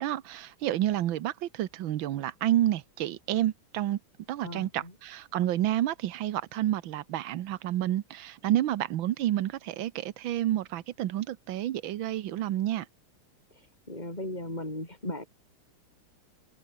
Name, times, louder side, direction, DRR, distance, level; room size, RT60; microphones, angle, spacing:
voice 1, 0.0-4.0 4.3-12.9, right 13 dB, 70° right, 1.6 m, -29 dB
voice 2, 4.4-4.9 13.5-15.2, left 1 dB, 20° left, 6.7 m, -37 dB
open air
omnidirectional pair, 2.3 m